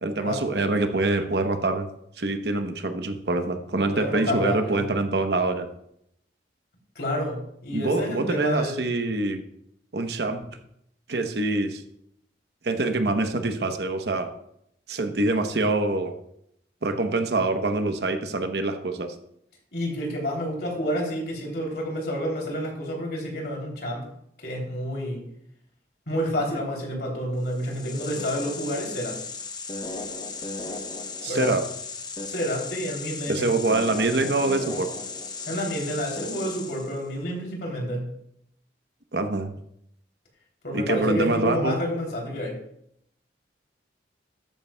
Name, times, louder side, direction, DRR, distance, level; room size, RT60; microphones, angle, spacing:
voice 1, 0.0-1.9 2.2-5.7 7.7-9.4 9.9-10.5 11.1-11.8 12.6-14.3 14.9-16.1 16.8-19.1 31.2-31.6 33.3-34.9 39.1-39.5 40.7-41.8, right 2 dB, 60° right, 6 dB, 0.9 m, -25 dB
voice 2, 3.9-4.8 6.9-8.8 19.7-24.0 24.4-25.2 26.1-29.2 31.3-31.5 32.3-33.5 35.5-38.1 40.6-42.6, equal, 60° left, -1 dB, 3.1 m, -29 dB
sound 1, 27.5-37.1, left 3 dB, 25° left, 0.8 m, -36 dB
13.0 x 9.4 x 2.3 m, 0.73 s
head